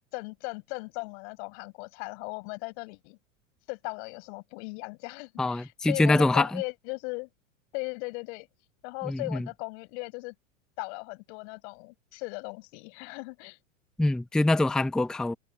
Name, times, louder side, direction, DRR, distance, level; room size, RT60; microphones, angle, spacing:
voice 1, 0.1-3.2 3.7-7.3 7.7-8.5 8.8-10.3 10.8-13.6, left 30 dB, 60° left, 6.2 m, -37 dB
voice 2, 5.4-6.6 9.1-9.4 14.0-15.3, left 2 dB, ahead, 0.5 m, -24 dB
hypercardioid pair, 100°, 39 cm